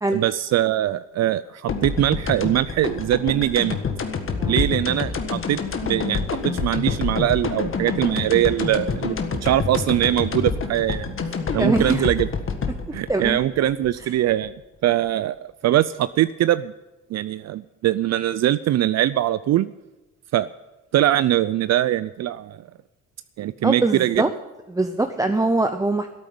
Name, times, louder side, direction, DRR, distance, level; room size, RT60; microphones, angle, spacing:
voice 1, 0.1-3.8 4.5-9.2 9.4-11.2 11.5-12.3 12.9-14.5 14.8-15.4 15.6-16.7 17.1-19.7 20.3-20.5 20.9-22.6 23.4-24.2, right 13 dB, 60° right, 16 dB, 0.5 m, -22 dB
sound 1, 1.7-14.5, left 5 dB, 45° left, 1.6 m, -27 dB
voice 2, 11.6-12.1 13.1-13.4 23.6-24.3 24.7-26.1, right 2 dB, 10° right, 7 dB, 0.8 m, -22 dB
13.0 x 9.0 x 9.5 m, 1.1 s
cardioid pair, 90°, 30 cm